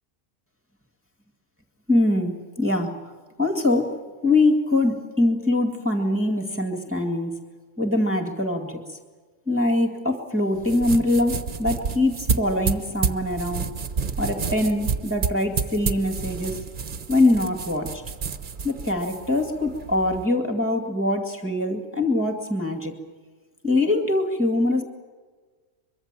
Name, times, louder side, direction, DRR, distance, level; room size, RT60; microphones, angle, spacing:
voice 1, 1.9-2.9 3.4-4.0 4.2-7.4 7.8-8.8 9.5-13.7 14.2-16.6 17.1-18.0 18.6-22.9 23.6-24.8, left 2 dB, 10° right, 1 dB, 2.1 m, -23 dB
sound 1, 10.6-20.2, right 6 dB, 40° right, 1.0 m, -30 dB
24.0 x 23.0 x 7.6 m, 1.4 s
omnidirectional pair, 1.4 m